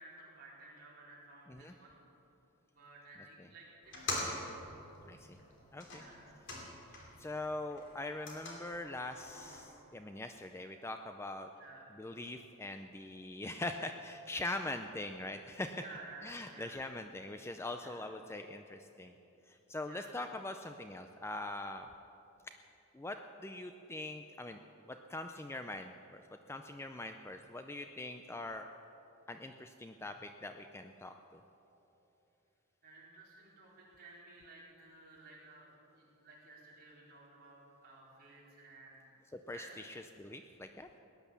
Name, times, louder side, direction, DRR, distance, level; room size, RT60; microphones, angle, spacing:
voice 1, 0.0-2.0 2.7-4.4 5.9-6.3 11.5-11.9 15.7-16.9 17.8-18.0 19.8-20.2 32.8-39.0 39.5-39.8, right 2 dB, 45° right, -6 dB, 4.2 m, -54 dB
sound 1, 3.8-7.3 7.6-9.6, left 2 dB, 55° left, 2.9 m, -44 dB
voice 2, 5.1-5.4 5.7-6.0 7.2-11.5 12.0-15.8 16.2-19.2 19.5-21.9 22.9-24.6 24.9-26.2 26.5-28.7 29.3-31.4 39.3-40.9, left 2 dB, 10° left, 6 dB, 0.4 m, -42 dB
18.0 x 10.5 x 7.0 m, 2.9 s
head